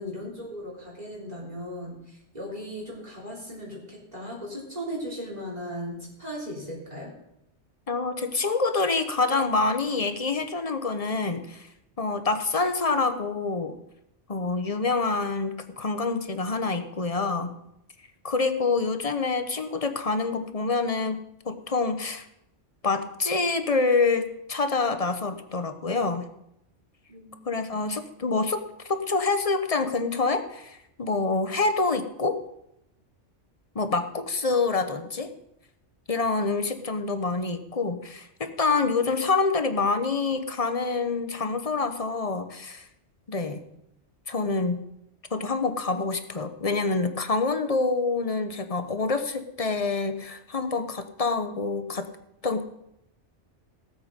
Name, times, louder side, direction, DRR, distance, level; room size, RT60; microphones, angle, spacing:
voice 1, 0.0-7.1 27.1-27.4, equal, 35° right, -3 dB, 3.6 m, -37 dB
voice 2, 7.9-11.7 12.0-13.7 14.3-17.5 18.2-22.3 22.8-26.3 27.5-32.4 33.7-35.3 36.1-42.8 43.3-43.6 44.3-44.8 45.3-52.1 52.4-52.6, left 3 dB, 35° left, 9 dB, 1.0 m, -26 dB
18.0 x 8.1 x 5.2 m, 0.81 s
omnidirectional pair, 1.2 m